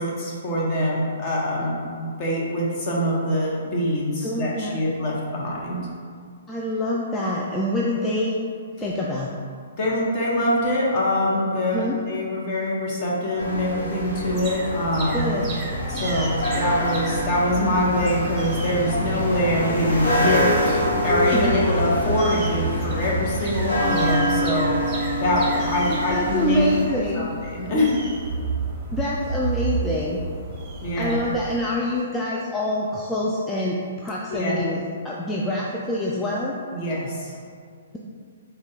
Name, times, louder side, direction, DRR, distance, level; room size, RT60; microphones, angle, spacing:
voice 1, 0.0-5.8 9.8-15.3 15.9-24.8 25.2-26.6 27.1-27.2 27.5-28.0 30.8-31.2 34.3-34.6 36.7-37.4, left 1 dB, 35° left, -5 dB, 1.0 m, -24 dB
voice 2, 4.2-4.8 6.5-8.4 8.8-9.3 11.7-12.0 15.1-15.5 21.3-21.6 23.0-23.1 23.4-23.5 23.7-23.8 26.1-27.3 28.9-30.2 31.0-36.6, left 1 dB, 10° left, -4 dB, 0.3 m, -26 dB
sound 1, 13.4-26.8, left 1 dB, 75° left, 1.2 m, -26 dB
sound 2, 14.1-31.6, right 3 dB, 25° right, 0.7 m, -32 dB
4.1 x 2.3 x 3.7 m, 2.1 s
hypercardioid pair, 130°, 0 cm